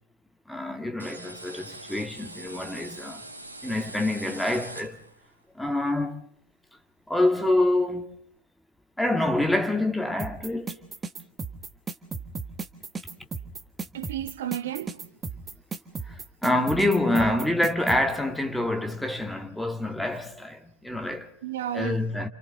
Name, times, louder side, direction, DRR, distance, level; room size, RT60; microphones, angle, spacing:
voice 1, 0.5-3.2 3.6-5.0 5.5-6.2 7.1-8.1 9.0-10.8 16.0-21.3 21.7-22.3, left 1 dB, 5° left, 2.1 m, -26 dB
sound 1, 1.0-5.3, right 2 dB, 80° right, 1.6 m, -42 dB
sound 2, 10.2-18.0, right 4 dB, 15° right, 1.5 m, -35 dB
voice 2, 13.9-15.0 17.1-17.4 21.4-22.3, right 11 dB, 55° right, 1.2 m, -33 dB
30.0 x 28.0 x 3.9 m
figure-of-eight pair, 90°, 0 cm